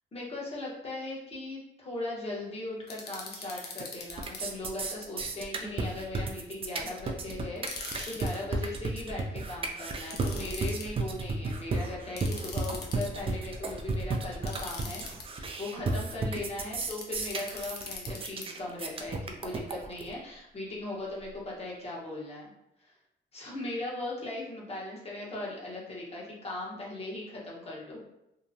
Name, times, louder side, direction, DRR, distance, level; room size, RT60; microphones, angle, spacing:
voice 1, 0.1-15.0 15.3-22.5 22.8-22.9 23.3-28.0, left 2 dB, 30° left, -4 dB, 1.0 m, -38 dB
sound 1, 2.9-4.4 7.6-8.4 10.1-10.9 12.2-13.3 14.5-15.2 16.8-18.5, left 4 dB, 55° left, 0.6 m, -41 dB
sound 2, 3.4-3.8 4.1-20.1, right 3 dB, 30° right, 0.3 m, -33 dB
2.8 x 2.1 x 2.6 m, 0.88 s
cardioid pair, 90°, 20 cm